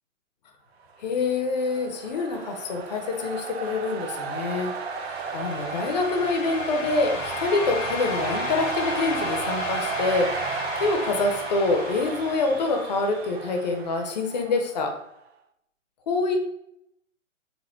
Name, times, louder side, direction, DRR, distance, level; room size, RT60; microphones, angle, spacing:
voice 1, 1.0-4.7 5.3-10.4 10.8-15.0 16.1-16.4, left 3 dB, 35° left, 5 dB, 0.6 m, -26 dB
sound 1, 1.2-15.0, right 5 dB, 55° right, 0.5 m, -33 dB
sound 2, 4.5-13.4, left 5 dB, 80° left, 0.8 m, -36 dB
4.2 x 2.1 x 4.3 m, 0.77 s
hypercardioid pair, 135°, 38 cm